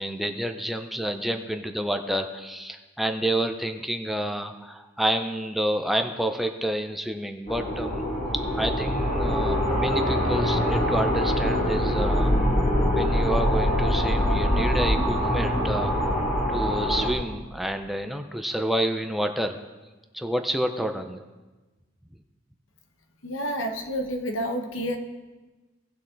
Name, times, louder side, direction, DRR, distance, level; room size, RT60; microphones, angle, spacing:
voice 1, 0.0-8.0 8.5-12.3 12.9-15.9 16.5-19.6 20.1-21.2, equal, ahead, 5 dB, 0.5 m, -29 dB
sound 1, 7.5-17.1, equal, 40° left, 2.0 m, -24 dB
voice 2, 23.2-25.0, equal, 80° left, 5 dB, 1.1 m, -29 dB
17.5 x 6.1 x 3.9 m, 1.2 s
head